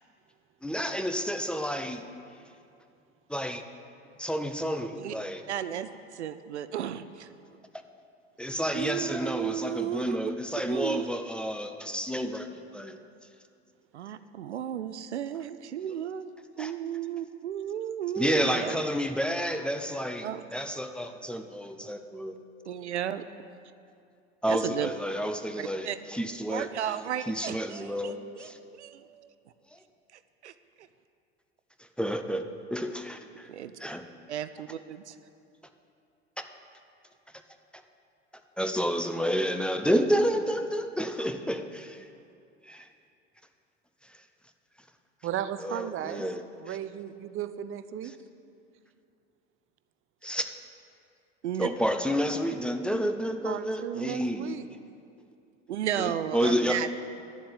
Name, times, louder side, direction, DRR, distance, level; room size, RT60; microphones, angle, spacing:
voice 1, 0.6-2.1 3.3-3.6 4.2-5.4 8.4-12.5 12.7-13.0 16.6-16.7 18.2-22.4 24.4-27.0 27.3-28.6 32.0-32.4 32.7-33.5 33.8-34.1 36.4-36.5 38.6-42.1 42.7-42.9 45.6-46.4 46.7-46.8 50.2-50.5 51.6-54.5 56.0-56.8, equal, 5° left, 7 dB, 0.7 m, -30 dB
voice 2, 5.5-7.3 8.7-10.2 10.7-11.1 13.9-16.3 16.6-18.8 20.2-20.4 22.7-23.2 24.5-24.9 25.6-26.0 26.5-29.3 30.4-30.5 33.5-33.7 34.3-35.2 51.4-51.7 55.7-56.9, right 10 dB, 85° right, 12 dB, 0.5 m, -33 dB
voice 3, 45.2-46.3 46.6-48.1 53.4-54.7, right 11 dB, 40° right, 12 dB, 0.7 m, -35 dB
11.0 x 7.5 x 8.8 m, 2.5 s
hypercardioid pair, 75°, 33 cm